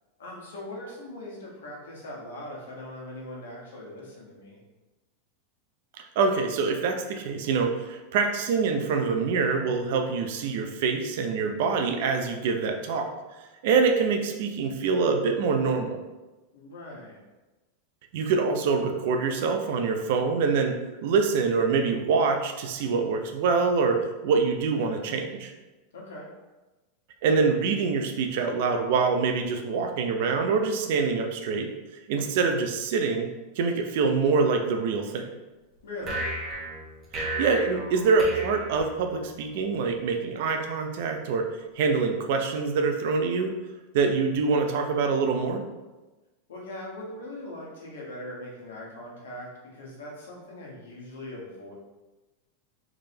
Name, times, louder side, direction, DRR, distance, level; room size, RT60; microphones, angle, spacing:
voice 1, 0.2-4.6 16.5-17.2 25.9-26.3 35.8-36.2 46.5-51.7, left 1 dB, 85° left, -3 dB, 1.2 m, -40 dB
voice 2, 6.0-13.1 13.6-16.0 18.1-20.8 21.0-25.5 27.2-31.7 32.1-33.3 33.6-35.3 37.2-41.5 41.8-43.5 43.9-45.6, right 4 dB, 65° right, 5 dB, 0.5 m, -25 dB
sound 1, 36.0-39.4, right 1 dB, 35° right, 1.2 m, -34 dB
3.6 x 3.3 x 2.9 m, 1.1 s
hypercardioid pair, 110°, 0 cm